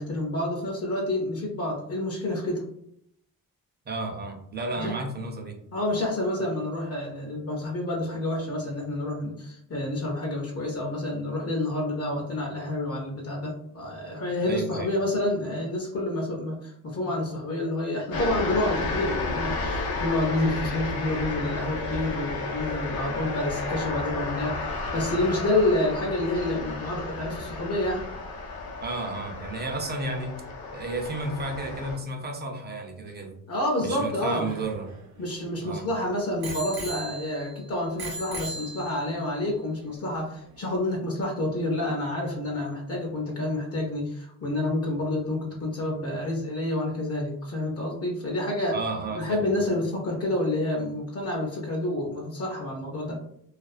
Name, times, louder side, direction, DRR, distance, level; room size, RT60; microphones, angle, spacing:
voice 1, 0.0-2.6 4.8-5.0 5.7-28.0 33.5-34.5 35.2-48.8 49.1-53.2, left 1 dB, 40° left, -1 dB, 0.5 m, -28 dB
voice 2, 3.9-5.6 14.4-14.9 28.8-30.4 30.7-33.3 33.8-34.9 35.6-35.9 48.7-49.5, right 2 dB, 30° right, 3 dB, 0.4 m, -32 dB
sound 1, 18.1-32.0, left 3 dB, 85° left, 0.7 m, -32 dB
Bicycle bell, 34.1-35.8 36.4-37.6 38.0-39.2 40.0-40.1, right 2 dB, 80° right, 0.7 m, -38 dB
2.4 x 2.3 x 2.4 m, 0.72 s
cardioid pair, 120°, 36 cm